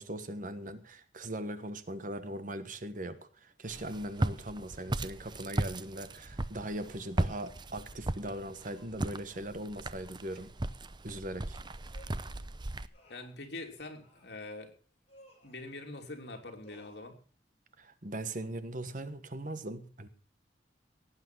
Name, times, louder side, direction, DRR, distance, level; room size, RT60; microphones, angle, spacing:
voice 1, 0.0-10.5 11.0-11.6 17.8-20.1, right 1 dB, 50° right, 1.4 m, -40 dB
Walk footsteps, 3.7-12.9, right 1 dB, 25° right, 0.7 m, -36 dB
sound 1, 6.6-6.9 8.2-9.4 10.3-10.6 11.9-12.4 12.9-13.4 14.0-14.4 15.1-15.7 16.6-17.0, equal, 35° left, 5.9 m, -60 dB
voice 2, 13.1-14.7 15.4-17.2, left 2 dB, 70° left, 3.1 m, -44 dB
17.5 x 8.9 x 6.2 m
head